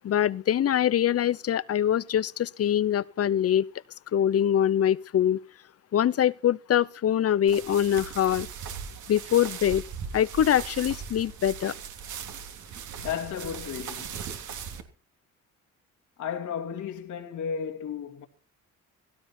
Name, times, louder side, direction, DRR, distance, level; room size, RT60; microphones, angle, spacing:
voice 1, 0.0-3.7 4.1-5.4 5.9-8.5 9.1-9.8 10.1-11.7, left 10 dB, 50° left, 0.8 m, -24 dB
sound 1, 7.5-14.8, right 7 dB, 75° right, 3.3 m, -39 dB
voice 2, 13.0-14.2 16.2-18.3, left 7 dB, 75° left, 2.6 m, -34 dB
17.5 x 17.0 x 4.4 m
cardioid pair, 90°, 30 cm